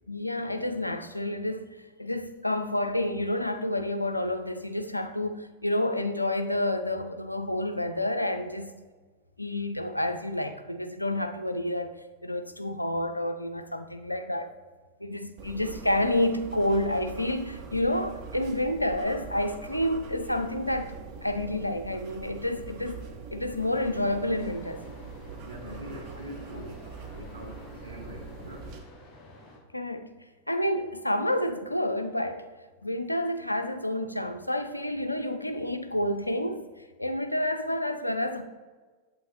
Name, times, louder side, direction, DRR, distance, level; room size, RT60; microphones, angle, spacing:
voice 1, 0.1-1.7 2.0-8.7 9.4-11.9 12.2-14.5 15.0-23.0 23.3-24.8 29.7-30.0 30.5-32.4 32.8-36.7 37.0-38.4, left 1 dB, 85° left, 0.5 m, -29 dB
sound 1, 15.4-28.8, right 5 dB, 45° right, 1.2 m, -43 dB
sound 2, 23.7-29.6, left 1 dB, 20° left, 1.6 m, -51 dB
voice 2, 25.4-26.8 27.1-28.7, equal, 80° right, 1.3 m, -43 dB
8.4 x 7.8 x 2.9 m
figure-of-eight pair, 90°, 0 cm